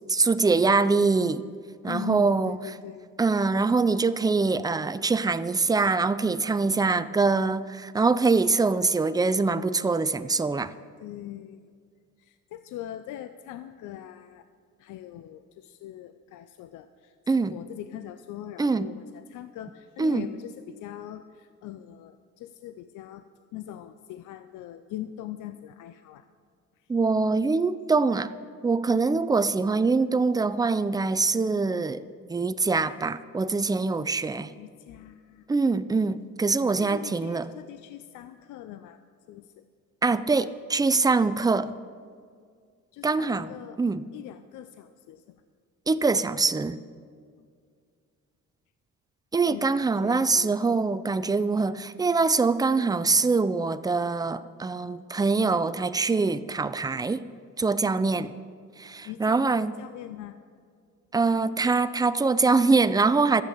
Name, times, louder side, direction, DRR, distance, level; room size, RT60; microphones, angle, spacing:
voice 1, 0.1-1.4 1.8-2.6 3.2-10.7 17.3-17.5 18.6-18.9 20.0-20.3 26.9-28.3 28.6-32.0 32.3-34.5 35.5-37.5 40.0-41.7 43.0-43.5 43.8-44.1 45.9-46.8 49.3-57.2 57.6-58.3 58.8-59.7 61.1-63.4, right 4 dB, 15° right, 14 dB, 0.4 m, -24 dB
voice 2, 1.9-3.1 11.0-11.7 12.2-14.4 14.8-17.2 17.5-23.3 23.5-26.3 29.1-29.2 34.6-35.4 36.8-39.0 39.3-39.6 42.9-43.8 44.1-45.4 47.4-47.5 49.4-50.8 58.1-58.3 59.0-60.4, left 12 dB, 85° left, 11 dB, 0.5 m, -41 dB
13.0 x 8.3 x 6.9 m, 2.1 s
cardioid pair, 90°, 30 cm